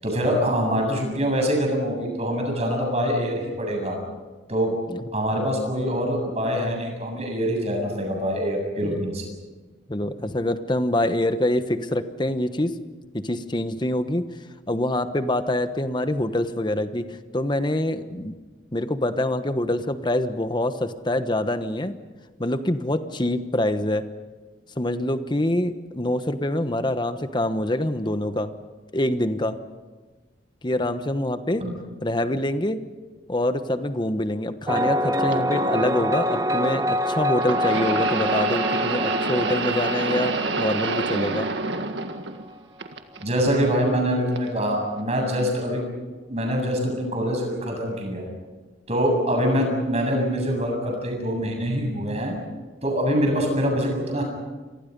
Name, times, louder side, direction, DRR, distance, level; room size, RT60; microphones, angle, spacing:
voice 1, 0.0-4.0 4.5-4.8 5.1-9.3 31.6-31.7 43.2-45.9 46.3-48.3 48.9-52.3 52.8-54.2, equal, 35° right, 1 dB, 7.7 m, -24 dB
voice 2, 9.9-12.7 13.1-14.2 14.7-18.3 18.7-21.9 22.4-24.0 24.8-28.5 28.9-29.6 30.6-31.6 32.0-32.8 33.3-41.5, left 1 dB, 25° left, 10 dB, 1.2 m, -25 dB
sound 1, 34.7-42.2, equal, 20° right, 0.9 m, -26 dB
sound 2, 35.3-35.4 37.4-42.5 42.8-43.6 44.4-44.5 45.5-45.6, right 3 dB, 75° right, 1.8 m, -27 dB
29.0 x 24.0 x 5.4 m, 1.3 s
head